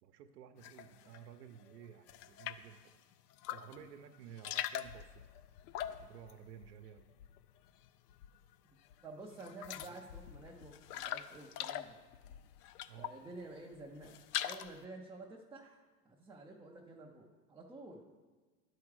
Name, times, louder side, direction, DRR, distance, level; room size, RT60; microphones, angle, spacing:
voice 1, 0.0-2.9 3.5-5.2 5.8-7.1 9.8-10.0 12.9-13.1, right 9 dB, 85° right, 6 dB, 0.8 m, -54 dB
sound 1, 0.6-1.2 1.6-2.8 3.3-3.9 4.1-7.6 7.8-8.5 8.9-9.0 9.3-13.3 13.7-14.8, left 11 dB, 75° left, 0.6 m, -43 dB
voice 2, 9.0-12.0 13.0-18.1, right 2 dB, 5° right, -4 dB, 0.3 m, -51 dB
11.5 x 4.8 x 4.7 m, 1.3 s
supercardioid pair, 115°, 48 cm